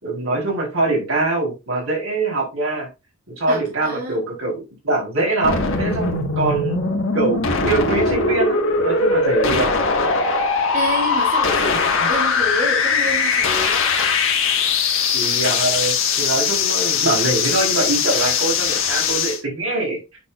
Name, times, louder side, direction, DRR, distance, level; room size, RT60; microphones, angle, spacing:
voice 1, 0.0-2.9 3.4-6.7 7.1-9.7 15.1-20.0, right 2 dB, 80° right, 4.2 m, -23 dB
voice 2, 3.5-4.2 10.4-13.8, right 1 dB, 45° right, 3.1 m, -28 dB
sound 1, 5.4-19.4, left 5 dB, 70° left, 1.9 m, -20 dB
9.4 x 6.4 x 2.6 m
head